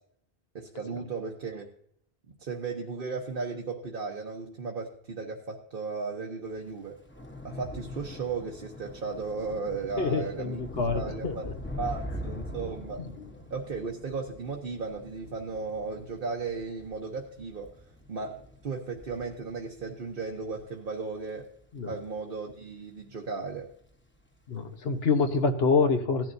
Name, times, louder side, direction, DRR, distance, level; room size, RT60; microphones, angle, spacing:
voice 1, 0.5-1.7 2.4-7.0 7.4-10.6 10.9-11.5 11.8-13.0 13.5-17.7 18.1-21.5 21.9-23.7, right 4 dB, 60° right, 0 dB, 1.2 m, -35 dB
Thunder / Rain, 6.5-23.1 23.5-23.9 24.2-24.4, left 1 dB, 10° left, 1.1 m, -43 dB
voice 2, 10.0-11.5 13.0-13.3 21.7-22.0 24.5-26.3, left 4 dB, 75° left, 7 dB, 1.4 m, -27 dB
16.5 x 10.5 x 2.7 m, 0.66 s
omnidirectional pair, 1.0 m